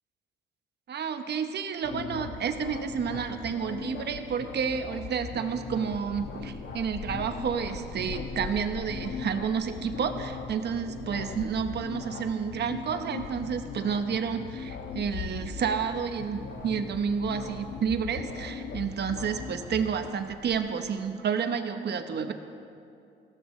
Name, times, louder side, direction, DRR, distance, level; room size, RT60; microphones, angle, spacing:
voice 1, 0.9-22.3, right 6 dB, 60° right, 8 dB, 1.0 m, -30 dB
sound 1, 1.8-20.1, left 5 dB, 60° left, 1.2 m, -40 dB
Wind, 2.4-20.9, left 5 dB, 85° left, 1.5 m, -47 dB
18.5 x 17.0 x 3.3 m, 2.6 s
cardioid pair, 90°, 20 cm